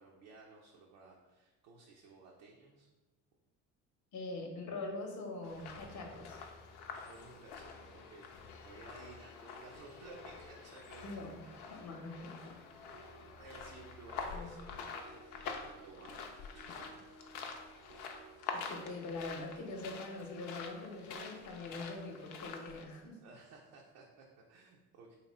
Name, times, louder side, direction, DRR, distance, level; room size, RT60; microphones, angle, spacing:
voice 1, 0.0-2.9 6.8-11.8 12.1-12.7 13.4-17.0 23.2-25.2, right 3 dB, 70° right, -2 dB, 0.7 m, -57 dB
voice 2, 4.1-6.4 11.0-12.4 14.3-14.5 18.5-23.2, left 2 dB, 45° left, 2 dB, 0.9 m, -43 dB
sound 1, 5.4-22.8, left 5 dB, 80° left, 0.6 m, -47 dB
Wind instrument woodwind instrument, 9.0-12.1 12.6-15.8, equal, 15° left, 0.6 m, -62 dB
sound 2, 12.2-19.1, right 4 dB, 35° right, 0.6 m, -60 dB
3.2 x 2.8 x 4.1 m, 1.2 s
hypercardioid pair, 60°, 43 cm